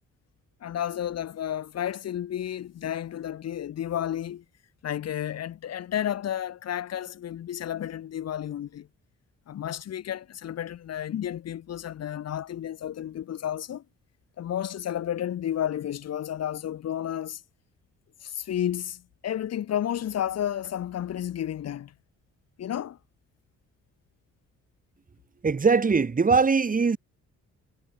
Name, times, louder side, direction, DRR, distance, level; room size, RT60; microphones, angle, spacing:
voice 1, 0.6-4.4 4.8-8.9 9.5-13.8 14.4-17.4 18.2-21.9 22.6-23.0, left 10 dB, 55° left, 1.1 m, -32 dB
voice 2, 25.4-27.0, right 4 dB, 25° right, 1.7 m, -21 dB
cardioid pair, 90°, 30 cm